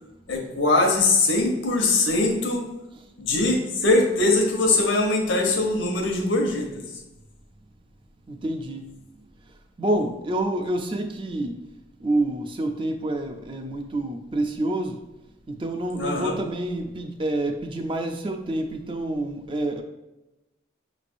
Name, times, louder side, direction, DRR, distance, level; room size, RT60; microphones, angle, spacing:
voice 1, 0.3-2.7 3.2-6.8 15.9-16.4, left 2 dB, 80° left, 2 dB, 1.0 m, -22 dB
voice 2, 8.3-8.9 9.8-11.7 12.0-15.0 15.5-19.8, right 1 dB, 25° right, 5 dB, 0.4 m, -28 dB
5.8 x 3.3 x 2.5 m, 0.98 s
head